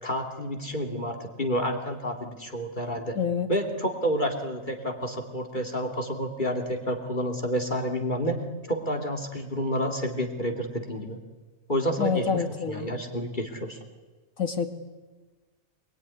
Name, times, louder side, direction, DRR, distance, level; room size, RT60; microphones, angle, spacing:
voice 1, 0.0-3.2 3.5-8.4 8.7-11.2 11.7-13.8, equal, 35° left, 3 dB, 2.7 m, -29 dB
voice 2, 3.2-3.5 12.0-12.9 14.4-14.7, left 6 dB, 75° left, 6 dB, 2.7 m, -27 dB
27.0 x 21.5 x 9.9 m, 1.3 s
omnidirectional pair, 1.4 m